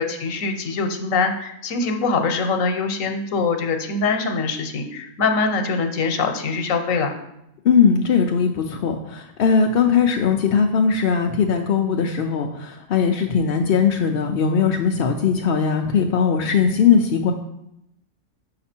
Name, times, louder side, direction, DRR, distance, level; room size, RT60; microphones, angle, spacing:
voice 1, 0.0-7.1, left 4 dB, 90° left, 5 dB, 1.2 m, -23 dB
voice 2, 7.6-17.3, left 6 dB, 60° left, 2 dB, 0.6 m, -19 dB
6.6 x 5.8 x 4.3 m, 0.83 s
omnidirectional pair, 1.3 m